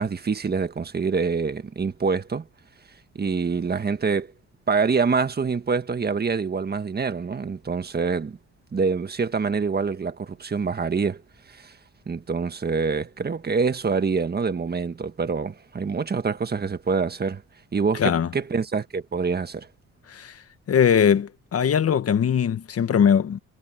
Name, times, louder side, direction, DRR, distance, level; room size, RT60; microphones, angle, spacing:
voice 1, 0.0-2.5 3.1-4.3 4.7-8.4 8.7-11.2 11.5-11.8 12.1-17.4 17.7-19.7, right 5 dB, 30° right, 1.6 m, -25 dB
voice 2, 18.0-18.3 20.1-20.4 20.7-23.4, left 8 dB, 50° left, 1.4 m, -21 dB
cardioid pair, 90°, 30 cm